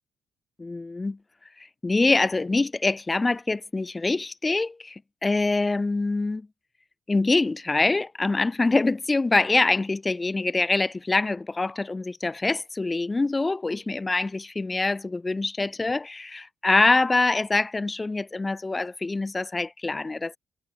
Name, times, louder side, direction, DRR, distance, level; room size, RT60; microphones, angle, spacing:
voice 1, 0.6-1.2 1.6-6.5 7.1-20.4, left 3 dB, 20° left, 1.8 m, -25 dB
cardioid pair, 90°, 0 cm